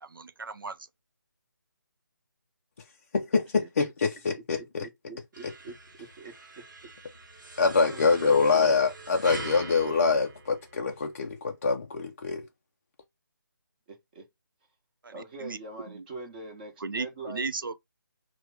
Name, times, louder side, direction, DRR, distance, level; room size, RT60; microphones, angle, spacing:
voice 1, 0.0-0.8 15.0-15.6 15.9-16.0 16.8-17.9, right 4 dB, 80° right, 0.5 m, -36 dB
voice 2, 3.1-4.9 7.6-12.5, left 4 dB, 40° left, 0.4 m, -25 dB
voice 3, 4.3-6.3 7.8-8.4 13.9-14.3 15.1-17.5, right 2 dB, 25° right, 1.0 m, -43 dB
sound 1, 5.3-11.1, right 2 dB, 65° right, 0.9 m, -43 dB
2.9 x 2.1 x 3.3 m
figure-of-eight pair, 155°, 11 cm